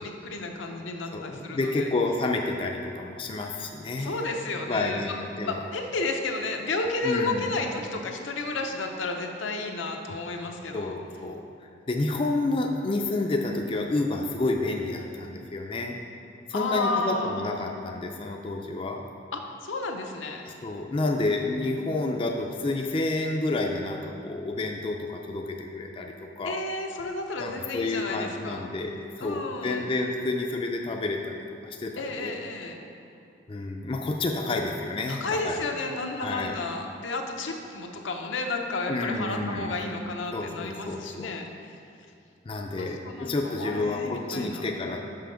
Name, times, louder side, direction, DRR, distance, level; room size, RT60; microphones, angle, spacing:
voice 1, 0.0-1.9 4.0-10.9 16.5-17.5 19.3-20.4 26.4-28.7 29.2-29.9 32.0-32.8 35.1-41.4 42.8-44.7, left 3 dB, 85° left, 3 dB, 0.7 m, -32 dB
voice 2, 1.1-4.3 4.7-5.6 7.0-7.5 10.7-11.4 11.9-16.0 16.5-19.0 20.6-26.6 27.4-31.4 31.6-31.9 32.2-32.3 33.5-35.6 36.2-36.5 38.9-39.8 40.3-41.4 42.4-45.0, left 2 dB, 30° left, 2 dB, 0.4 m, -29 dB
5.7 x 5.6 x 5.0 m, 2.5 s
head